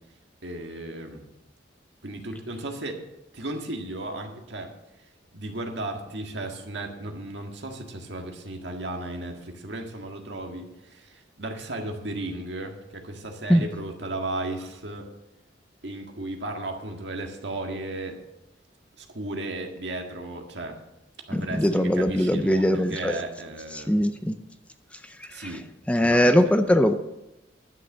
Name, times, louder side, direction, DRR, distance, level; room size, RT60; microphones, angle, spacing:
voice 1, 0.4-1.2 2.0-3.0 3.3-4.7 5.3-15.1 15.8-18.2 19.0-20.8 21.3-24.0 25.3-25.7 26.0-26.5, right 2 dB, 65° right, 3 dB, 1.8 m, -35 dB
voice 2, 21.3-23.2 23.7-24.4 25.3-25.5 25.9-26.9, equal, 5° left, 8 dB, 0.5 m, -21 dB
11.5 x 6.7 x 7.7 m, 0.91 s
head